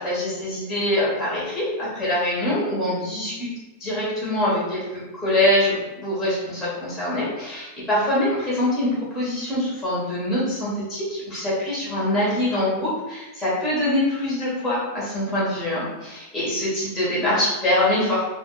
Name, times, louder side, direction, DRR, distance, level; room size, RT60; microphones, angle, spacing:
voice 1, 0.0-3.3 3.8-18.2, left 1 dB, ahead, -8 dB, 0.9 m, -24 dB
2.7 x 2.3 x 3.8 m, 1.1 s
omnidirectional pair, 1.7 m